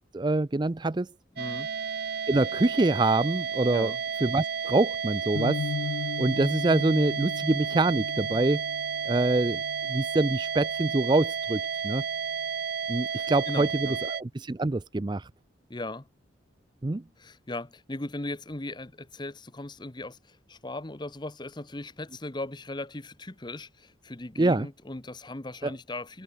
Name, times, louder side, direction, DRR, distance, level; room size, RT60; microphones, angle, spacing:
voice 1, 0.1-1.1 2.3-3.9 4.2-5.6 6.2-8.6 9.1-9.6 9.9-12.0 12.9-15.3 16.8-17.0 24.4-24.7 25.6-25.7, right 2 dB, 25° right, 0.5 m, -25 dB
voice 2, 1.3-1.7 3.7-4.0 13.1-14.0 15.7-16.1 17.2-26.2, left 2 dB, 25° left, 1.0 m, -38 dB
sound 1, 1.4-14.2, right 6 dB, 55° right, 0.7 m, -32 dB
sound 2, 5.3-11.4, left 5 dB, 75° left, 0.4 m, -38 dB
head